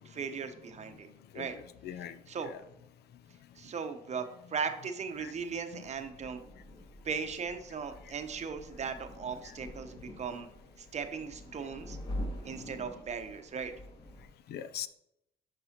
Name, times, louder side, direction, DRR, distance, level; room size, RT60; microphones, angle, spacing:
voice 1, 0.0-1.1 1.3-1.6 2.3-2.5 3.6-6.4 7.0-10.5 10.8-12.0 12.4-13.7, right 6 dB, 35° right, 7 dB, 0.8 m, -38 dB
voice 2, 1.3-2.6 5.2-5.3 5.7-5.8 9.4-9.5 14.5-14.9, left 10 dB, 60° left, 13 dB, 0.5 m, -42 dB
sound 1, 5.8-14.3, left 1 dB, 25° left, 1.9 m, -45 dB
11.0 x 5.4 x 2.9 m, 0.81 s
cardioid pair, 110°, 19 cm